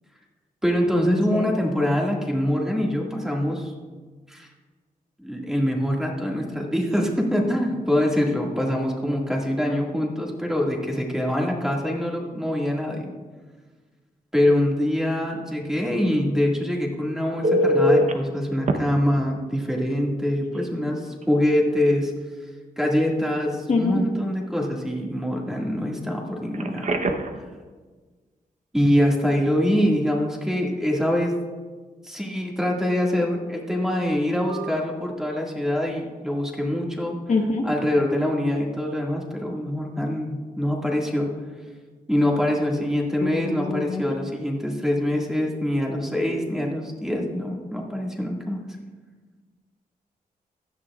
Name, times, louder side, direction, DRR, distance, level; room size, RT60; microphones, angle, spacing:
voice 1, 0.6-3.7 4.3-4.5 5.2-13.1 14.3-22.1 22.8-26.9 28.7-31.4 32.0-37.2 37.6-41.3 42.1-48.6, left 1 dB, 5° right, -1 dB, 2.0 m, -24 dB
Telephone, 17.4-18.1 18.7-18.8 20.5-20.7 21.1-21.2 26.5-27.4 34.5-34.7, equal, 50° right, 0.9 m, -22 dB
voice 2, 37.3-37.7 43.2-44.0, left 4 dB, 50° left, 2 dB, 1.2 m, -24 dB
16.0 x 11.0 x 2.5 m, 1.4 s
wide cardioid pair, 95°, 15 cm